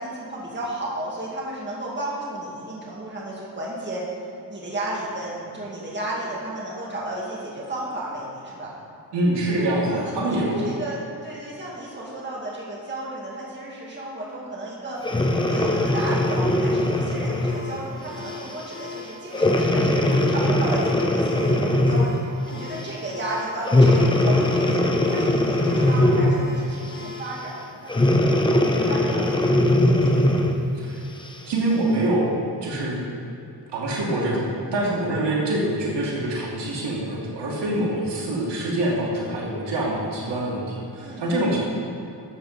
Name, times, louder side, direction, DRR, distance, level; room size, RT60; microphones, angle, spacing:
voice 1, 0.0-4.0 4.5-8.7 9.8-15.0 15.5-22.2 22.4-24.8 25.1-28.6 28.9-30.3 41.0-41.6, right 1 dB, 25° right, -5 dB, 2.1 m, -33 dB
voice 2, 9.1-10.6 30.7-31.0 31.5-32.3 32.6-33.0 33.7-41.6, right 1 dB, 80° right, -4 dB, 2.5 m, -25 dB
Breathing, 15.0-17.7 18.3-18.5 19.3-22.2 23.6-26.5 27.9-30.6 31.3-31.4, left 1 dB, 10° left, 0.7 m, -20 dB
sound 1, 17.4-27.4, left 5 dB, 40° left, 2.0 m, -39 dB
13.0 x 7.7 x 4.1 m, 2.8 s
wide cardioid pair, 140°, 41 cm